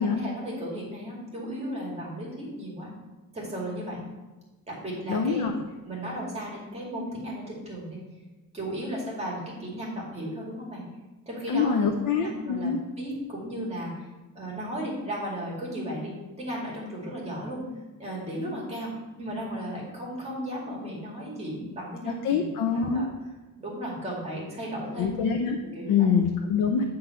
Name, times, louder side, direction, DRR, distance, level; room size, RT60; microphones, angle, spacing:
voice 1, 0.0-2.9 3.3-4.0 4.7-5.5 5.8-8.0 8.5-10.8 11.3-11.8 12.1-14.1 14.3-17.6 18.0-18.9 19.2-22.5 22.7-23.1 23.6-25.1 25.7-26.1 26.5-26.6, equal, 20° right, -5 dB, 2.2 m, -35 dB
voice 2, 5.1-5.5 11.5-12.8 22.1-23.1 25.0-25.6 25.9-26.8, left 6 dB, 75° left, 3 dB, 0.7 m, -25 dB
9.3 x 3.9 x 5.6 m, 1.2 s
cardioid pair, 180°, 33 cm